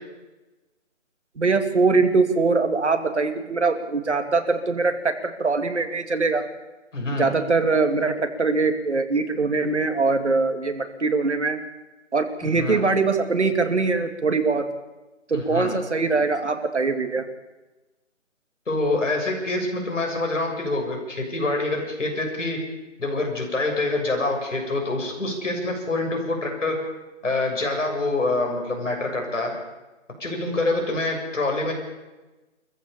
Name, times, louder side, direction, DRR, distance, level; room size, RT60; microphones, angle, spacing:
voice 1, 1.4-6.4 7.1-11.6 12.1-14.7 15.3-17.3, right 4 dB, 60° right, 6 dB, 2.6 m, -22 dB
voice 2, 6.9-7.3 12.4-12.8 15.3-15.8 18.7-22.6 23.0-26.8 27.2-29.5 30.2-31.7, left 2 dB, 70° left, 2 dB, 7.2 m, -26 dB
24.5 x 14.5 x 7.1 m, 1.1 s
figure-of-eight pair, 170°, 39 cm